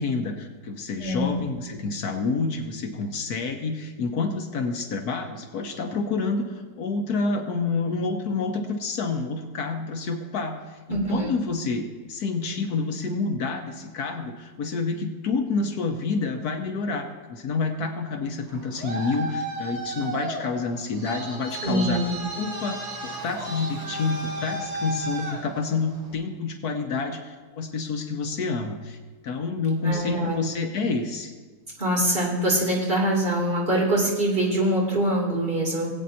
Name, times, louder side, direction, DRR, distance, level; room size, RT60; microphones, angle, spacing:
voice 1, 0.0-22.0 22.4-29.0 29.2-31.3, left 4 dB, 70° left, 5 dB, 1.4 m, -28 dB
voice 2, 10.9-11.3 21.6-22.1 29.8-30.4 31.8-35.9, right 1 dB, 35° right, -4 dB, 3.0 m, -24 dB
Traffic noise roadway noise, 18.4-26.1, right 1 dB, 65° right, 2.2 m, -34 dB
20.0 x 8.6 x 2.8 m, 1.4 s
omnidirectional pair, 1.7 m